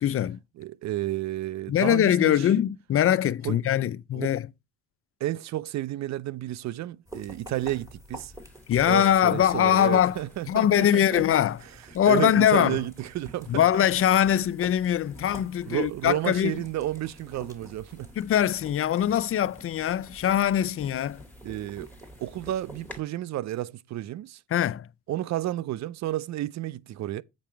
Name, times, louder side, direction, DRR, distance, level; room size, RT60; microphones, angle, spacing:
voice 1, 0.0-0.4 1.7-4.5 8.7-10.2 10.5-11.6 11.9-12.8 13.5-16.6 18.2-21.2 24.5-24.9, left 10 dB, 50° left, 0.5 m, -22 dB
voice 2, 0.6-2.4 3.4-3.6 4.1-4.3 5.2-8.3 8.9-11.2 12.1-13.6 15.7-18.1 21.4-21.9 22.2-24.4 25.1-27.2, right 14 dB, 65° right, 0.5 m, -31 dB
sound 1, 7.1-23.0, equal, 10° right, 3.1 m, -48 dB
sound 2, 8.3-23.0, left 2 dB, 5° left, 1.9 m, -57 dB
8.5 x 5.3 x 4.4 m
cardioid pair, 90°, 30 cm